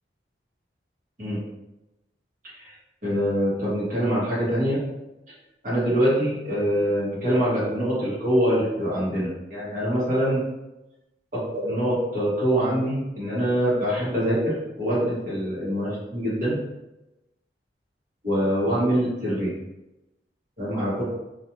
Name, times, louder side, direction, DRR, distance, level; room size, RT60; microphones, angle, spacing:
voice 1, 3.0-4.8 5.6-10.4 11.3-16.6 18.2-19.5 20.6-21.0, equal, 45° right, -9 dB, 1.1 m, -24 dB
2.4 x 2.4 x 2.9 m, 0.96 s
head